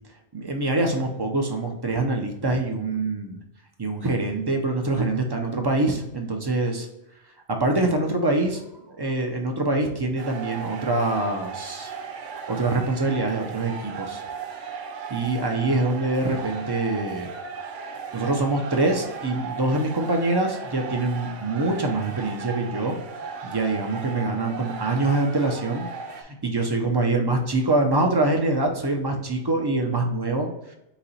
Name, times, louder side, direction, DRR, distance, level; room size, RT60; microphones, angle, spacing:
voice 1, 0.3-3.4 3.8-6.9 7.5-11.9 12.2-14.2 15.1-17.3 18.1-23.0 23.4-25.9 26.1-30.5, right 2 dB, 40° right, 2 dB, 0.3 m, -25 dB
sound 1, 10.2-26.2, right 5 dB, 85° right, 1.0 m, -36 dB
4.1 x 2.9 x 4.0 m, 0.89 s
omnidirectional pair, 1.2 m